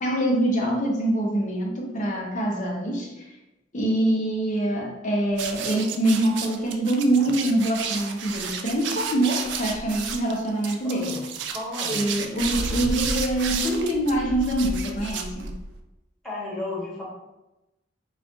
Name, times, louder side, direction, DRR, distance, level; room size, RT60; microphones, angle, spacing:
voice 1, 0.0-3.4 3.7-11.2 11.9-15.5, right 1 dB, 45° left, 0 dB, 0.7 m, -24 dB
sound 1, 5.3-15.8, right 5 dB, 75° right, 0.4 m, -31 dB
voice 2, 10.8-11.2 11.5-12.0 16.2-17.0, left 2 dB, 5° left, -7 dB, 1.4 m, -33 dB
4.2 x 2.4 x 3.6 m, 0.99 s
head